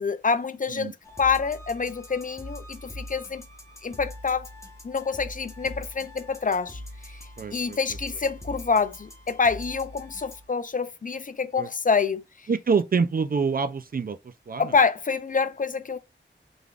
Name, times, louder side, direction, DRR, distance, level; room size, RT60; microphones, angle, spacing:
voice 1, 0.0-3.4 3.8-4.5 4.8-6.8 7.5-12.2 14.6-16.0, left 5 dB, 45° left, 0.4 m, -26 dB
sound 1, 1.0-10.5, left 1 dB, 15° left, 0.9 m, -42 dB
voice 2, 7.4-7.8 11.6-11.7 12.5-14.2 14.5-14.7, right 5 dB, 50° right, 0.4 m, -26 dB
3.7 x 3.4 x 2.4 m
wide cardioid pair, 75°, 20 cm